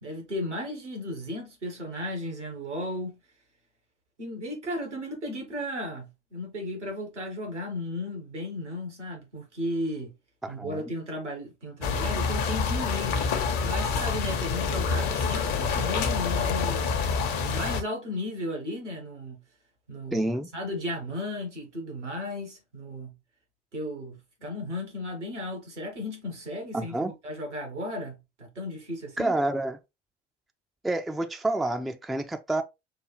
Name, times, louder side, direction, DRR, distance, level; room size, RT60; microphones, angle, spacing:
voice 1, 0.0-3.2 4.2-10.1 10.5-13.3 13.6-16.9 17.4-19.4 19.9-20.2 20.5-23.1 23.7-29.3, left 1 dB, 85° right, 1.4 m, -35 dB
voice 2, 10.4-10.8 20.1-20.5 26.7-27.1 29.2-29.8 30.8-32.6, right 2 dB, ahead, 0.4 m, -28 dB
sound 1, 11.8-17.8, left 5 dB, 55° left, 1.0 m, -27 dB
6.5 x 2.4 x 3.1 m
figure-of-eight pair, 60°, 34 cm